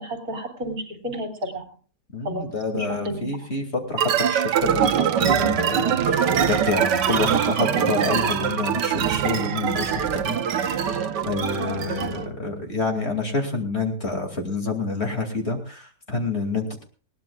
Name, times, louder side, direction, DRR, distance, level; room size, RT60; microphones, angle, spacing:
voice 1, 0.0-1.6 2.2-3.3 11.6-12.1, equal, 55° right, 4 dB, 3.5 m, -32 dB
voice 2, 2.1-10.9 11.2-16.8, left 3 dB, 35° left, 4 dB, 2.8 m, -28 dB
sound 1, 4.0-12.3, right 8 dB, 75° right, 1.5 m, -23 dB
21.0 x 18.0 x 2.4 m, 0.37 s
omnidirectional pair, 1.9 m